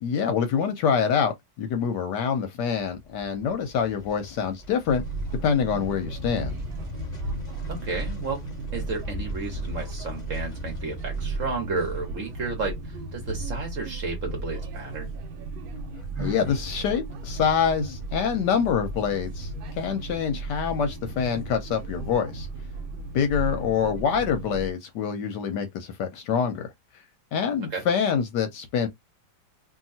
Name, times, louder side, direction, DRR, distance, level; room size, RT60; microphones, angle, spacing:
voice 1, 0.0-5.0 5.4-6.6 16.2-22.5 23.1-26.7 27.3-28.9, left 7 dB, 70° left, 1.1 m, -26 dB
sound 1, 2.7-15.8 16.1-16.2, left 3 dB, 35° left, 0.7 m, -42 dB
sound 2, 4.9-24.7, right 2 dB, 85° right, 1.5 m, -35 dB
voice 2, 7.7-8.4 8.7-15.1 27.7-27.8, right 4 dB, 50° right, 1.1 m, -32 dB
Sigh, 16.1-16.7, right 1 dB, 10° right, 1.4 m, -36 dB
2.8 x 2.8 x 2.7 m
omnidirectional pair, 2.1 m